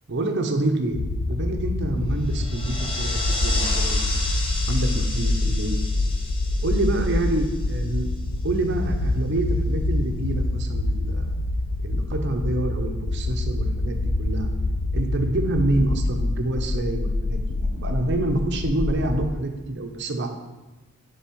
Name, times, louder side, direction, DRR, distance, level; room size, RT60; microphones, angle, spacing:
voice 1, 0.1-1.0 1.3-4.4 4.7-5.8 6.6-8.1 8.4-11.4 11.8-14.5 14.9-20.3, right 2 dB, 55° right, 5 dB, 0.7 m, -27 dB
sound 1, 0.9-19.3, left 2 dB, 60° left, 0.4 m, -26 dB
sound 2, 2.2-8.1, left 2 dB, 25° left, 0.9 m, -32 dB
7.0 x 3.5 x 4.5 m, 1.1 s
head